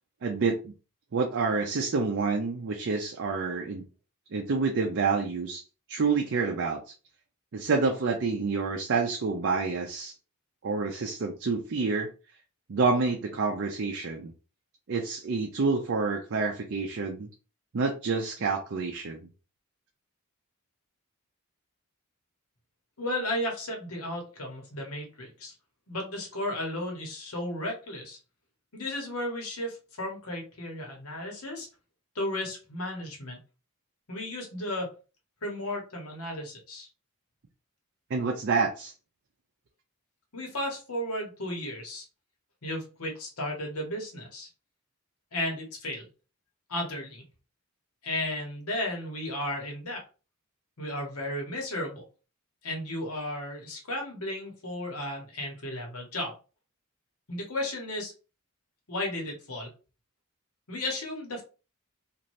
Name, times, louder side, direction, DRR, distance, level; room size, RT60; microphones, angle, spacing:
voice 1, 0.2-0.7 1.1-3.8 4.3-5.6 5.9-6.9 7.5-10.1 10.6-12.1 12.7-14.3 14.9-17.3 17.7-19.2 38.1-38.9, right 4 dB, 55° right, 2 dB, 0.5 m, -28 dB
voice 2, 23.0-25.5 25.9-28.2 28.7-31.7 32.1-33.4 34.1-34.9 35.4-36.9 40.3-42.0 42.6-44.5 45.3-46.1 46.7-47.2 48.0-50.0 50.8-52.0 52.6-56.3 57.3-58.1 58.9-59.7 60.7-61.4, left 1 dB, 75° left, 1 dB, 1.2 m, -34 dB
2.6 x 2.5 x 3.1 m, 0.33 s
head